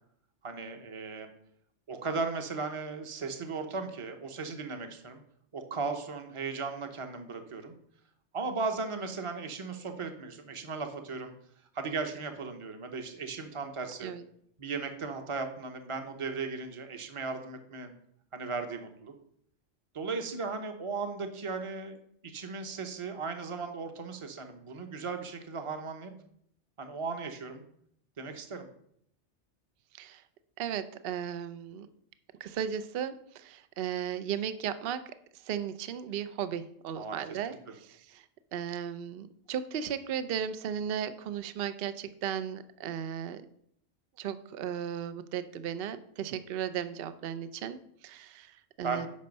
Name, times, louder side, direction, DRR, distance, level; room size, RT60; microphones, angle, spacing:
voice 1, 0.4-1.3 1.9-5.2 5.5-7.7 8.3-11.3 11.7-14.1 14.6-17.9 18.3-19.1 19.9-22.0 22.2-26.1 26.8-27.6 28.2-28.7 37.0-37.7 48.8-49.1, right 4 dB, 30° right, 6 dB, 0.9 m, -36 dB
voice 2, 30.6-31.9 32.4-35.0 35.4-38.2 38.5-43.4 44.2-49.1, right 9 dB, 60° right, 12 dB, 0.7 m, -36 dB
8.7 x 5.5 x 5.2 m, 0.69 s
omnidirectional pair, 1.2 m